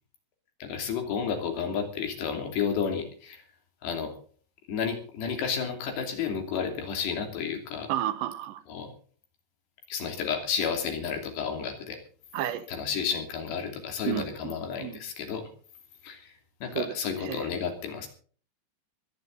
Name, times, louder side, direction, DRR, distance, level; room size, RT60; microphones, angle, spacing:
voice 1, 0.6-3.4 3.8-4.1 4.7-7.9 8.7-8.9 9.9-12.0 12.7-15.5 16.0-16.3 16.6-18.1, left 6 dB, 75° left, 4 dB, 5.0 m, -31 dB
voice 2, 7.9-8.6 12.3-12.7 14.1-14.5 14.8-15.0 16.8-16.9 17.2-17.5, right 12 dB, 90° right, 12 dB, 3.3 m, -31 dB
22.5 x 10.5 x 4.0 m, 0.43 s
omnidirectional pair, 4.9 m